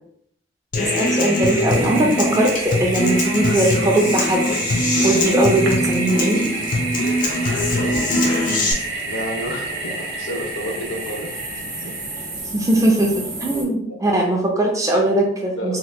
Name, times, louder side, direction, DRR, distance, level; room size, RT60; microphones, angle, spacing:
Human voice / Acoustic guitar, 0.7-8.7, left 1 dB, 45° left, 0.4 m, -21 dB
voice 1, 0.8-6.5 12.5-15.8, right 1 dB, 15° right, 0 dB, 0.4 m, -20 dB
Toilet flush, 0.8-12.4, right 3 dB, 80° right, 0.7 m, -29 dB
sound 1, 1.7-13.6, right 2 dB, 45° right, 0.9 m, -35 dB
voice 2, 9.0-11.4 11.8-12.0 13.9-14.0 15.6-15.8, equal, 85° left, 0 dB, 0.7 m, -30 dB
2.8 x 2.1 x 3.1 m, 0.71 s
head